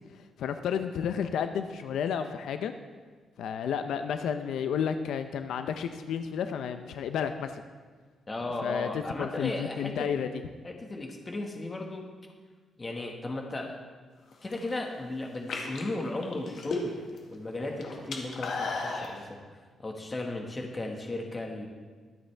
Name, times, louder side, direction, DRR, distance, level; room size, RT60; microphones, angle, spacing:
voice 1, 0.4-2.7 3.4-7.6 8.6-10.3, left 7 dB, 85° left, 8 dB, 0.6 m, -31 dB
voice 2, 8.3-10.1 10.6-12.0 12.8-13.8 14.4-16.9 17.3-19.4 19.8-21.7, left 2 dB, 20° left, 1 dB, 1.6 m, -35 dB
sound 1, 14.3-14.8 15.3-17.2 17.5-19.1, left 3 dB, 60° left, 1.8 m, -34 dB
23.0 x 7.9 x 3.4 m, 1.5 s
cardioid pair, 160°, 0 cm